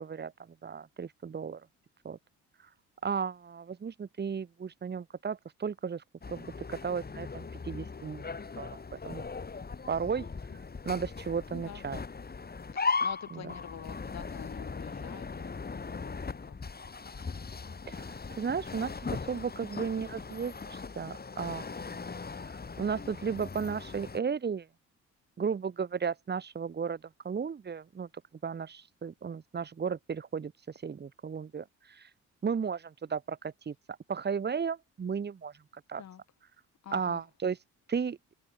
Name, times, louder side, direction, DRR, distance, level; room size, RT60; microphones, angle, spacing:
voice 1, 0.0-1.6 2.0-2.2 3.0-8.3 8.6-9.3 9.9-10.3 10.8-12.0 13.3-13.5 17.9-22.0 22.5-24.7 25.4-28.1 28.4-30.5 30.8-32.1 32.4-33.7 34.1-35.5 35.9-36.0 36.9-37.6 37.9-38.2, right 6 dB, 35° right, 1.5 m, -35 dB
sound 1, 6.2-24.2, left 4 dB, 30° left, 7.9 m, -39 dB
voice 2, 12.7-16.6 36.0-36.2 36.8-37.2, left 9 dB, 60° left, 7.1 m, -47 dB
cardioid pair, 90°, 30 cm